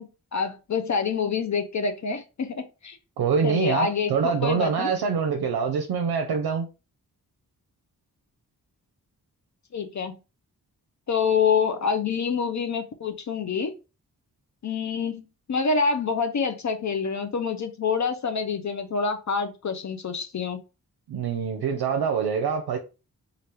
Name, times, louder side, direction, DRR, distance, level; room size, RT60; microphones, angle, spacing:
voice 1, 0.0-3.0 3.4-4.9 9.7-10.1 11.1-13.7 14.6-20.6, left 5 dB, 50° left, 0.5 m, -27 dB
voice 2, 3.2-6.7 21.1-22.8, right 6 dB, 75° right, 0.6 m, -25 dB
3.2 x 2.4 x 3.0 m
cardioid pair, 45°, 38 cm